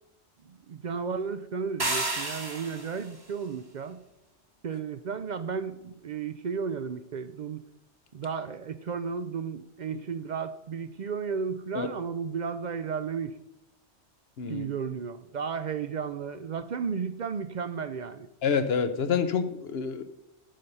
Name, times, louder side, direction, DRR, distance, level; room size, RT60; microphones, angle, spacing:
voice 1, 0.5-4.0 4.6-7.6 8.1-13.4 14.5-18.3, right 6 dB, 55° right, 12 dB, 0.5 m, -33 dB
sound 1, 1.8-3.1, right 2 dB, 20° right, 1.2 m, -31 dB
voice 2, 18.4-20.0, left 6 dB, 65° left, 10 dB, 0.9 m, -27 dB
9.1 x 5.6 x 6.6 m, 0.88 s
omnidirectional pair, 1.1 m